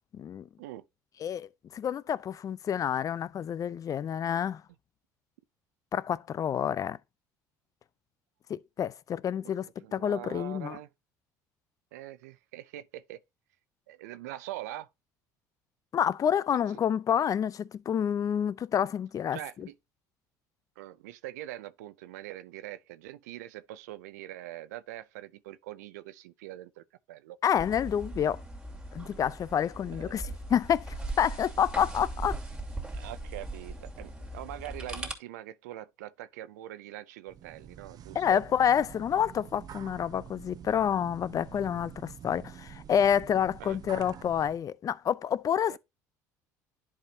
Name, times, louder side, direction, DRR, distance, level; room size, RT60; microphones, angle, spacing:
voice 1, 0.1-0.5 1.2-4.6 5.9-7.0 8.5-10.8 15.9-19.7 27.4-28.4 28.9-32.4 38.1-45.8, left 8 dB, 40° left, 0.6 m, -28 dB
voice 2, 9.8-10.9 11.9-13.2 13.9-14.9 19.3-19.7 20.8-27.4 29.9-30.2 32.9-38.4 43.6-43.8 45.7-45.8, right 14 dB, 85° right, 0.5 m, -43 dB
sound 1, 27.5-35.1, right 2 dB, 10° right, 2.5 m, -39 dB
sound 2, 37.3-44.6, right 8 dB, 45° right, 0.8 m, -47 dB
10.5 x 4.9 x 2.8 m
hypercardioid pair, 70°, 9 cm